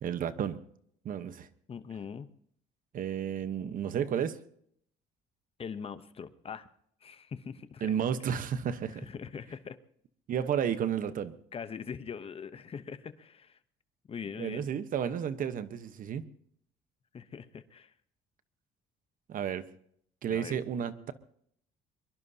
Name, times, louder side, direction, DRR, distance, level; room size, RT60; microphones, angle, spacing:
voice 1, 0.0-0.6 1.0-1.5 2.9-4.4 7.8-9.0 10.3-11.3 14.4-16.2 19.3-19.6 20.2-21.1, right 8 dB, 55° right, 12 dB, 1.1 m, -32 dB
voice 2, 1.7-2.3 5.6-6.7 7.0-7.9 8.9-9.8 11.5-13.6 14.1-14.7 17.1-17.9 20.3-20.5, left 6 dB, 35° left, 12 dB, 0.9 m, -42 dB
22.5 x 22.5 x 2.8 m, 0.66 s
cardioid pair, 110°, 17 cm